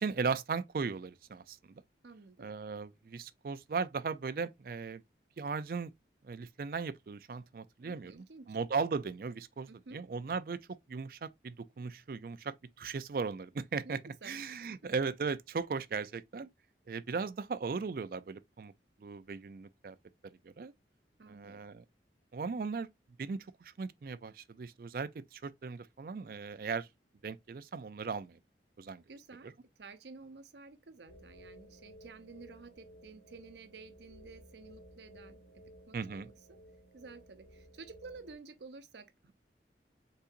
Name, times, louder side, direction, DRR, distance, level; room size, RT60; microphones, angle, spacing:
voice 1, 0.0-1.8 2.4-5.0 5.4-5.9 6.2-10.6 10.9-16.5 16.9-18.7 19.0-20.0 20.2-20.7 21.3-21.8 22.3-22.9 23.2-26.9 27.2-28.4 28.8-29.0 35.9-36.3, right 5 dB, 55° right, 0.4 m, -37 dB
voice 2, 2.0-2.5 7.8-8.6 9.7-10.0 13.8-14.4 14.6-14.9 21.2-21.6 29.1-29.5 29.8-36.6 36.9-39.3, right 4 dB, 80° right, 0.7 m, -52 dB
sound 1, 31.1-38.3, equal, 90° left, 1.1 m, -56 dB
5.5 x 3.8 x 2.5 m
head